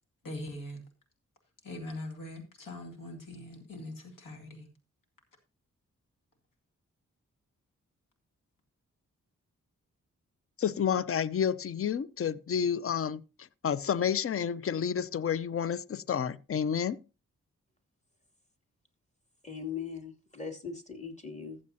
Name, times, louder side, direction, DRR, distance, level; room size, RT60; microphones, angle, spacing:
voice 1, 0.2-0.8 1.6-4.7, left 1 dB, 80° left, 2.3 m, -42 dB
voice 2, 10.6-13.2 13.6-17.0, left 8 dB, 45° left, 0.6 m, -30 dB
voice 3, 19.4-21.6, left 6 dB, 20° left, 2.5 m, -40 dB
14.5 x 7.6 x 2.8 m
cardioid pair, 40°, 33 cm